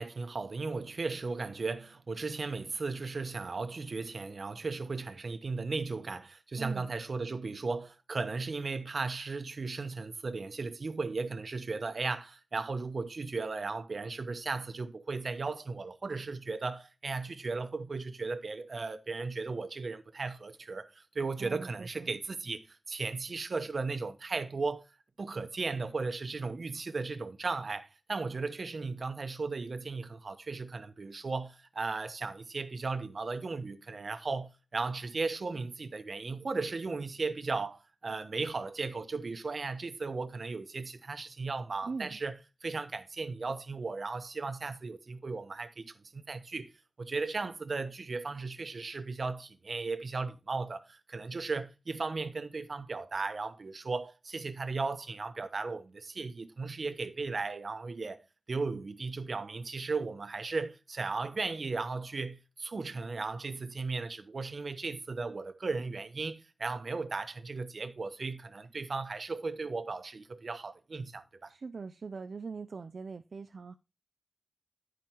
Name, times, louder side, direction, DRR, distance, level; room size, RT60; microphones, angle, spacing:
voice 1, 0.0-24.8 25.2-46.7 47.0-71.5, right 4 dB, 70° right, 0.9 m, -36 dB
voice 2, 6.6-6.9 21.4-22.1 41.8-42.2 71.5-73.7, right 4 dB, 85° right, 0.4 m, -41 dB
11.0 x 4.9 x 4.4 m
wide cardioid pair, 80°, 0 cm